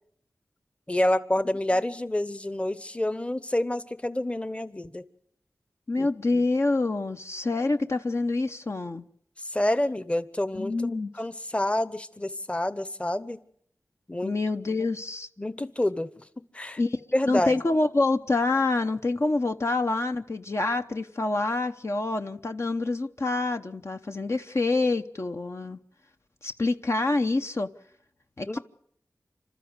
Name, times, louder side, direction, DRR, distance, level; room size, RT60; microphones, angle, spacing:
voice 1, 0.9-5.0 6.0-6.1 9.5-10.7 11.2-13.4 14.1-14.3 15.4-16.1 16.5-16.8 17.1-17.6 28.5-28.6, left 1 dB, 20° left, 1.1 m, -27 dB
voice 2, 5.9-9.0 10.5-11.1 14.2-15.3 16.8-25.8 26.4-27.7 28.4-28.6, left 3 dB, 50° left, 0.9 m, -27 dB
27.0 x 13.0 x 8.1 m
cardioid pair, 45°, 6 cm